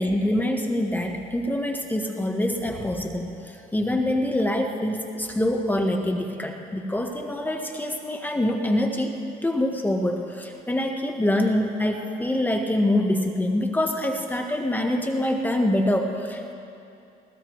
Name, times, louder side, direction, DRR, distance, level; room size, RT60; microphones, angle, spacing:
voice 1, 0.0-9.1 9.4-16.5, left 1 dB, 10° left, 3 dB, 1.0 m, -25 dB
20.0 x 18.5 x 3.1 m, 2.6 s
cardioid pair, 110°, 17 cm